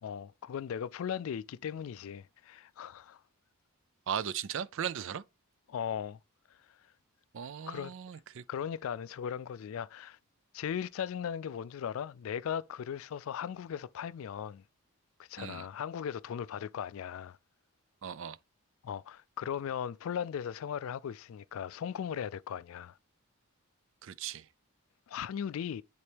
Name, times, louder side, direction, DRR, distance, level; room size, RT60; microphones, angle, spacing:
voice 1, 0.0-3.2 5.7-6.2 7.7-7.9 8.5-10.2 10.5-14.6 15.2-17.4 18.8-23.0 25.1-25.8, left 8 dB, 65° left, 0.3 m, -38 dB
voice 2, 4.1-5.2 7.3-8.4 15.4-15.7 18.0-18.4 24.0-24.5, right 8 dB, 60° right, 0.4 m, -37 dB
9.7 x 4.3 x 3.4 m
head